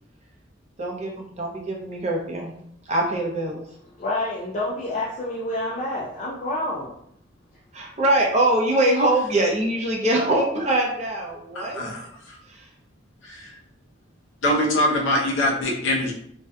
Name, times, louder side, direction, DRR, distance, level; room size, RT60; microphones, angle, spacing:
voice 1, 0.8-2.5 2.9-3.6 7.7-11.8 12.5-12.7, right 1 dB, 35° right, -1 dB, 0.5 m, -23 dB
voice 2, 4.0-6.9, left 1 dB, 35° left, -5 dB, 0.3 m, -28 dB
voice 3, 11.5-12.4 13.2-13.6 14.4-16.1, left 1 dB, 75° left, -1 dB, 0.6 m, -24 dB
2.6 x 2.3 x 2.2 m, 0.71 s
head